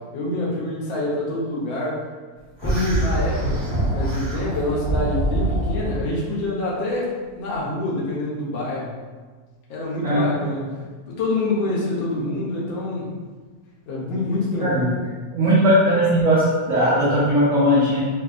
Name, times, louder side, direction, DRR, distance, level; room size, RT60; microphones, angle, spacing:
voice 1, 0.1-2.0 2.6-3.6 3.9-8.9 9.7-10.6 11.1-13.1 13.9-15.0, left 2 dB, 70° left, -5 dB, 1.4 m, -26 dB
sound 1, 2.6-6.0, right 1 dB, 25° left, 0.5 m, -24 dB
voice 2, 10.0-10.4 14.5-14.8 15.3-18.0, equal, 80° right, -9 dB, 0.6 m, -18 dB
3.5 x 2.5 x 2.3 m, 1.4 s
omnidirectional pair, 2.3 m